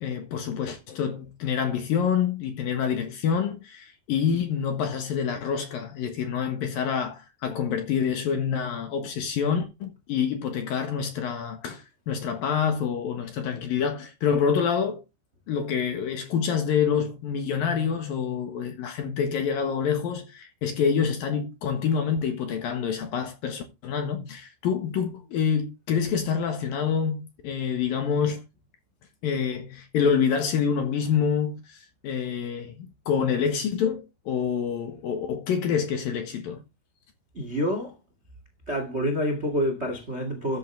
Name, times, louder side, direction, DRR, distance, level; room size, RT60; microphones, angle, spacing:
voice 1, 0.0-15.0 15.5-28.4 29.2-36.6, left 7 dB, 60° left, 2.8 m, -27 dB
voice 2, 37.3-37.9 38.7-40.6, equal, 30° right, 1.2 m, -27 dB
13.0 x 9.1 x 3.5 m
omnidirectional pair, 5.4 m